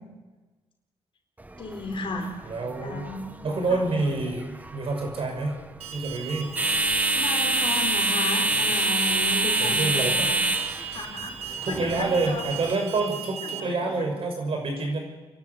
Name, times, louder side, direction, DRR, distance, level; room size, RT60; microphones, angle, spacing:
sound 1, 1.4-12.7, right 2 dB, 15° right, 1.2 m, -27 dB
voice 1, 1.6-2.3 2.8-3.2 3.7-3.8 7.1-10.4 10.8-12.5 13.4-14.1, left 3 dB, 50° left, 3 dB, 4.5 m, -34 dB
voice 2, 2.5-3.0 3.4-5.6 5.9-6.5 9.6-10.3 11.6-15.0, right 3 dB, 60° right, 2 dB, 6.0 m, -27 dB
Alarm, 5.8-13.6, right 8 dB, 75° right, 1.5 m, -37 dB
28.0 x 12.0 x 8.5 m, 1.2 s
cardioid pair, 100°, 11 cm